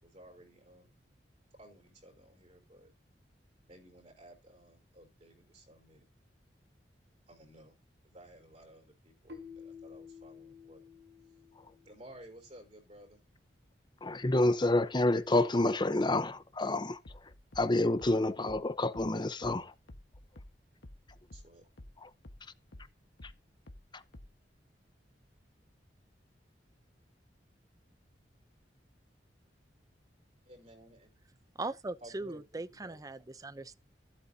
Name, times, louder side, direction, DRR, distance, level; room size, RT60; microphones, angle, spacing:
voice 1, 0.0-1.0 1.6-2.9 3.7-6.0 7.3-7.7 8.0-10.9 11.8-13.2 21.3-21.7 30.5-31.4 32.0-33.0, right 1 dB, 40° right, 4.4 m, -55 dB
Keyboard (musical), 9.3-12.1, left 6 dB, 85° right, 4.2 m, -51 dB
voice 2, 14.0-17.0 17.6-19.7 22.0-22.1, left 2 dB, 25° left, 0.8 m, -28 dB
sound 1, 17.0-22.0 22.2-24.5, left 1 dB, 85° left, 1.3 m, -52 dB
voice 3, 31.6-33.8, right 2 dB, 20° right, 0.6 m, -40 dB
14.5 x 8.3 x 2.8 m
head